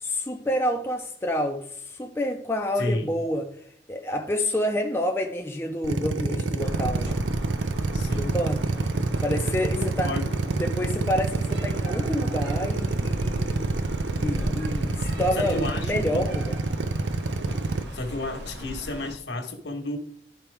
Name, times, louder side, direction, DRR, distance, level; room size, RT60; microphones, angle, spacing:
voice 1, 0.0-7.2 8.1-8.6 9.2-10.1 10.5-13.6 14.2-16.6, left 1 dB, 10° left, 0.5 m, -28 dB
voice 2, 2.8-3.2 7.9-8.4 9.7-10.7 15.3-16.2 17.9-20.0, left 1 dB, 70° left, 1.3 m, -32 dB
Drill, 5.8-17.8, right 3 dB, 80° right, 0.6 m, -27 dB
sound 1, 6.6-19.1, equal, 65° right, 1.3 m, -37 dB
11.5 x 4.3 x 3.5 m
head